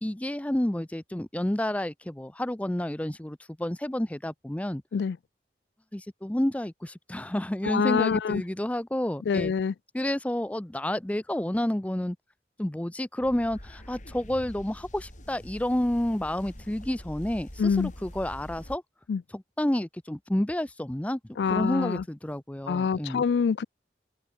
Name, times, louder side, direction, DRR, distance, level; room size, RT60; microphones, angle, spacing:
voice 1, 0.0-4.8 5.9-9.5 9.9-12.2 12.6-18.8 19.3-21.2 21.5-23.2, left 1 dB, 10° left, 0.5 m, -30 dB
voice 2, 7.6-8.4 9.3-9.7 17.6-17.9 19.1-19.2 21.4-22.0 22.7-23.6, left 6 dB, 75° left, 0.3 m, -25 dB
sound 1, 13.2-18.8, equal, 45° left, 6.3 m, -45 dB
open air
head